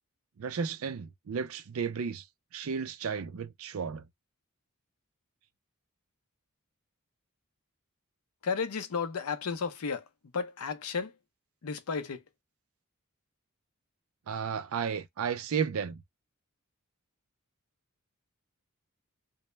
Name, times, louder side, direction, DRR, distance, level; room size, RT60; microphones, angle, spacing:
voice 1, 0.4-2.2 2.5-4.0 14.3-16.0, right 6 dB, 70° right, 0.4 m, -33 dB
voice 2, 8.4-10.0 10.3-11.1 11.6-12.2, left 5 dB, 85° left, 0.6 m, -33 dB
2.2 x 2.0 x 3.0 m
head